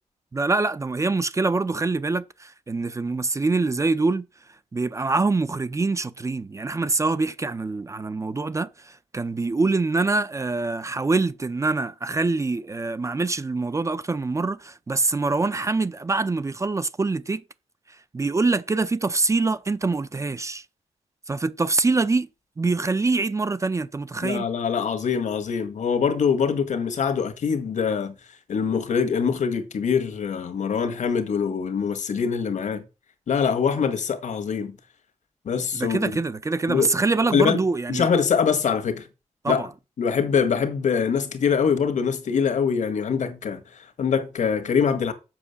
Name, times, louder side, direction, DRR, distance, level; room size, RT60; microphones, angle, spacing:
voice 1, 0.3-4.3 4.7-17.4 18.1-20.6 21.3-22.3 22.6-24.5 35.7-38.1 39.4-39.7, right 3 dB, 25° right, 0.5 m, -24 dB
voice 2, 24.2-28.2 28.5-32.8 33.3-34.8 35.4-36.1 36.7-36.9 37.3-37.6 37.9-39.1 39.5-39.6 40.0-45.1, left 6 dB, 75° left, 1.6 m, -24 dB
7.4 x 6.0 x 7.0 m
wide cardioid pair, 135°, 13 cm